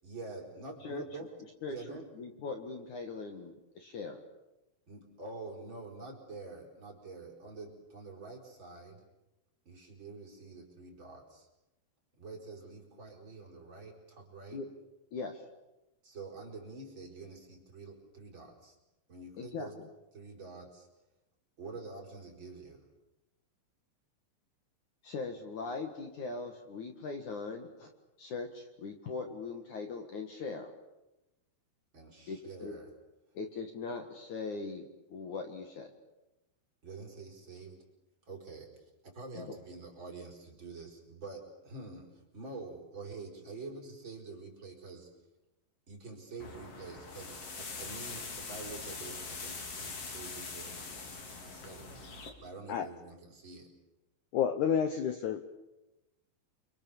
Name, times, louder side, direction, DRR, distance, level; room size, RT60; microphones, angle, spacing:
voice 1, 0.0-1.3 1.7-2.1 4.9-9.0 9.7-11.5 12.2-14.6 16.0-18.8 19.1-19.8 20.1-20.9 21.6-22.9 31.9-32.9 36.8-37.8 38.2-45.1 45.9-51.0 51.4-52.1 52.4-53.7, right 3 dB, 25° right, 0 dB, 5.4 m, -47 dB
voice 2, 1.6-4.2 14.5-14.7 15.1-15.4 19.4-19.7 25.0-27.9 28.2-30.7 32.3-32.8 33.3-34.8 35.1-35.9 39.3-39.5, left 4 dB, 55° left, 5 dB, 2.7 m, -40 dB
sound 1, 46.4-52.3, left 4 dB, 40° left, 3.5 m, -43 dB
voice 3, 54.3-55.4, left 8 dB, 75° left, 9 dB, 1.8 m, -29 dB
29.0 x 24.5 x 7.2 m, 0.98 s
omnidirectional pair, 4.9 m